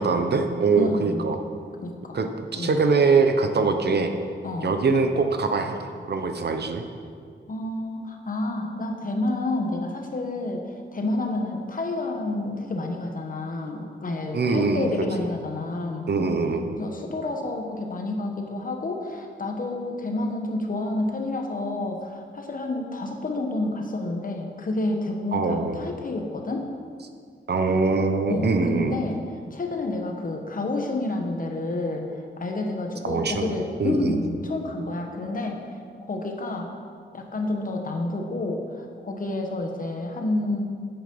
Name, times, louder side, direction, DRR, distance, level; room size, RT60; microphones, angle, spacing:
voice 1, 0.0-1.4 2.1-4.1 4.6-6.8 14.3-14.9 16.1-16.7 25.3-25.8 27.5-29.0 33.0-33.5 33.8-34.2, right 4 dB, 60° right, 6 dB, 0.8 m, -23 dB
voice 2, 0.8-1.2 1.8-2.2 2.5-2.8 4.4-4.8 7.5-10.6 10.9-16.1 16.8-26.7 28.3-29.2 29.5-35.6 36.1-36.7 37.1-40.6, left 2 dB, 45° left, 2 dB, 1.1 m, -29 dB
9.9 x 8.0 x 5.4 m, 2.1 s
wide cardioid pair, 180°, 20 cm